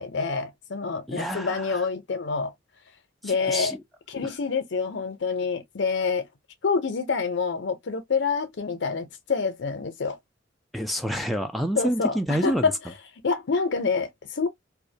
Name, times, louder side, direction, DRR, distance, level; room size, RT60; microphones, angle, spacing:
voice 1, 0.0-2.5 3.2-3.7 4.1-6.3 6.6-10.2 11.8-12.7 13.2-14.5, left 5 dB, 65° left, 0.6 m, -27 dB
voice 2, 1.1-1.8 3.2-3.8 10.7-12.7, equal, ahead, 0.3 m, -28 dB
2.4 x 2.1 x 2.7 m
head